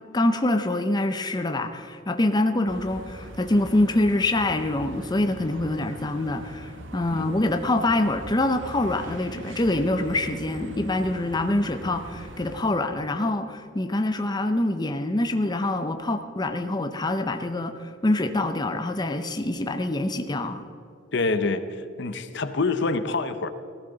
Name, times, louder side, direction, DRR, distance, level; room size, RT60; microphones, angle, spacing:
voice 1, 0.1-20.6, left 2 dB, 20° left, 7 dB, 0.7 m, -25 dB
sound 1, 2.7-12.6, right 1 dB, 70° right, 1.0 m, -41 dB
voice 2, 21.1-23.5, left 3 dB, 60° left, 10 dB, 0.8 m, -26 dB
17.0 x 15.0 x 4.0 m, 2.5 s
head